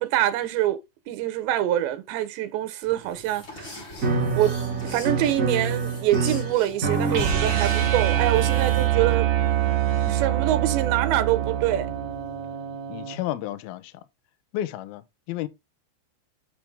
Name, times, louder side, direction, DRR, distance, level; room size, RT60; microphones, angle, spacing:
voice 1, 0.0-3.8 4.3-4.6 4.8-9.3 10.1-11.9, right 13 dB, 80° right, 3.0 m, -25 dB
sound 1, 2.8-9.1, left 2 dB, 30° left, 3.0 m, -43 dB
sound 2, 4.0-12.3, right 4 dB, 40° right, 1.1 m, -30 dB
sound 3, 7.1-13.2, right 12 dB, 55° right, 2.0 m, -24 dB
voice 2, 12.9-14.1 14.5-15.5, left 13 dB, 75° left, 2.3 m, -32 dB
7.8 x 7.0 x 3.6 m
omnidirectional pair, 5.4 m